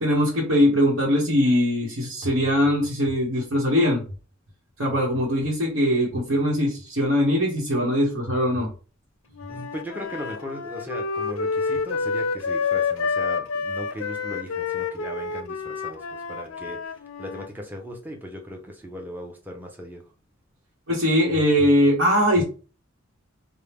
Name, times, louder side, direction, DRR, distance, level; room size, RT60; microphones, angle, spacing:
voice 1, 0.0-4.0 4.8-8.7 20.9-22.4, equal, 70° right, -5 dB, 1.0 m, -21 dB
Wind instrument woodwind instrument, 9.3-17.5, left 5 dB, 80° left, 0.5 m, -28 dB
voice 2, 9.5-20.0, equal, 10° right, 1 dB, 0.6 m, -38 dB
4.4 x 2.0 x 3.4 m, 0.36 s
head